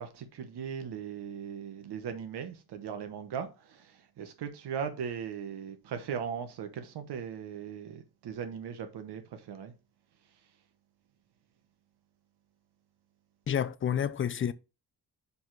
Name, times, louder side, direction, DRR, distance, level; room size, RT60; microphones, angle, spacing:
voice 1, 0.0-9.7, right 7 dB, 80° right, 1.1 m, -38 dB
voice 2, 13.5-14.5, left 9 dB, 35° left, 0.4 m, -29 dB
5.5 x 4.8 x 4.6 m
wide cardioid pair, 175°, 39 cm